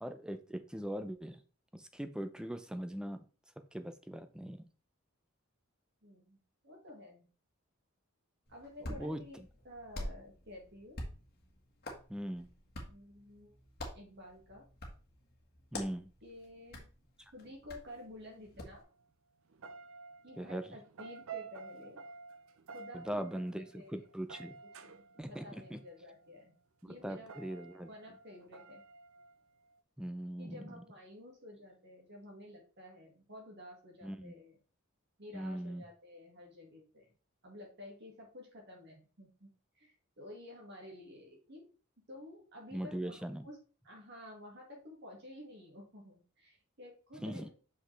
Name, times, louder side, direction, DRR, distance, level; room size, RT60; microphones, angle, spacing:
voice 1, 0.0-1.4 1.7-3.2 3.7-4.7 8.8-9.2 12.1-12.5 15.7-16.1 20.4-20.6 22.9-23.6 23.9-24.6 25.2-25.8 27.0-27.9 30.0-30.6 34.0-34.3 35.3-35.8 42.7-43.4 47.2-47.5, right 1 dB, 5° right, 9 dB, 0.5 m, -40 dB
voice 2, 6.0-7.3 8.5-11.0 12.8-13.6 13.9-14.7 16.2-16.9 17.3-18.8 20.2-22.0 22.7-23.9 24.8-26.6 26.9-27.4 27.9-28.8 30.4-34.6 35.2-37.1 37.4-39.5 39.7-41.7 42.0-43.6 43.8-47.5, left 1 dB, 55° right, 0 dB, 1.9 m, -52 dB
Hands, 8.5-18.8, left 1 dB, 50° left, 1.5 m, -48 dB
sound 1, 18.7-19.1 19.5-26.4 27.2-29.8, right 5 dB, 80° right, 0.6 m, -51 dB
5.9 x 5.2 x 3.3 m, 0.37 s
head